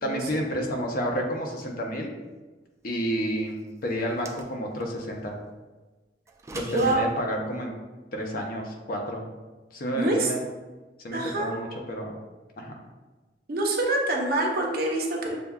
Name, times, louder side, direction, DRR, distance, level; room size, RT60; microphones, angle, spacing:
voice 1, 0.0-2.1 2.8-5.4 6.5-7.7 8.1-9.2 9.7-10.4 11.0-12.1 12.6-12.7, equal, 55° left, 1 dB, 0.7 m, -30 dB
sound 1, 4.0-4.9 6.3-7.0, right 2 dB, 15° right, 0.3 m, -41 dB
voice 2, 6.7-7.0 9.9-10.3 11.1-11.8 13.5-15.3, right 2 dB, 55° right, 0 dB, 0.7 m, -26 dB
6.8 x 2.3 x 2.3 m, 1.2 s
head